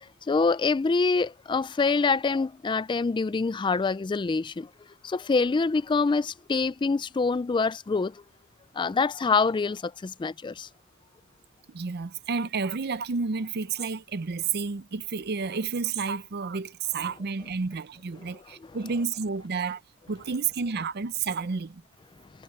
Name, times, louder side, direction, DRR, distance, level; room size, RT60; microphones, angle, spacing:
voice 1, 0.0-4.7 5.0-8.2 8.7-10.7, left 4 dB, 20° left, 0.3 m, -25 dB
voice 2, 11.7-19.8 20.1-21.8, right 5 dB, 50° right, 0.6 m, -30 dB
head